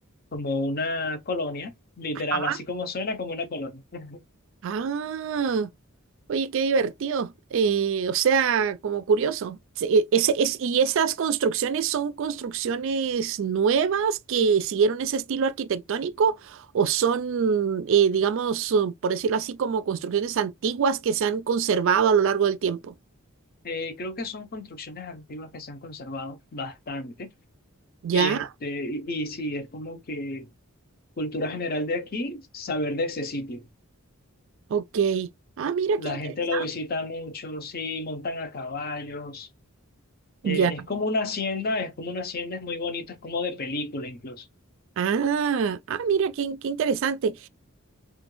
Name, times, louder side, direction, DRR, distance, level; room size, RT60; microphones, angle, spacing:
voice 1, 0.3-4.2 23.6-27.3 28.1-30.5 31.2-33.7 36.0-39.5 40.4-44.5, left 2 dB, 45° left, 0.6 m, -31 dB
voice 2, 4.6-5.7 6.3-22.9 28.0-28.5 34.7-35.3 35.6-36.2 36.5-36.7 40.4-40.7 45.0-47.5, right 6 dB, 60° right, 0.3 m, -24 dB
3.0 x 2.4 x 3.0 m
head